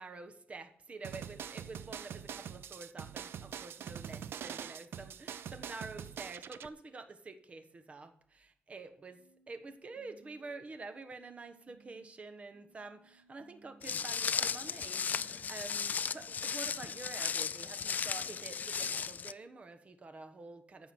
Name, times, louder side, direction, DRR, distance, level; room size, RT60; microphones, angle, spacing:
voice 1, 0.0-9.2 9.5-20.9, right 3 dB, 35° right, 8 dB, 1.2 m, -48 dB
sound 1, 1.0-6.7, right 8 dB, 85° right, 0.6 m, -44 dB
sound 2, 9.1-12.1 12.5-15.5, right 4 dB, 55° right, 3.4 m, -64 dB
Walk footsteps, 13.8-19.3, left 6 dB, 45° left, 0.4 m, -35 dB
15.0 x 6.0 x 6.3 m, 0.64 s
wide cardioid pair, 140°, 4 cm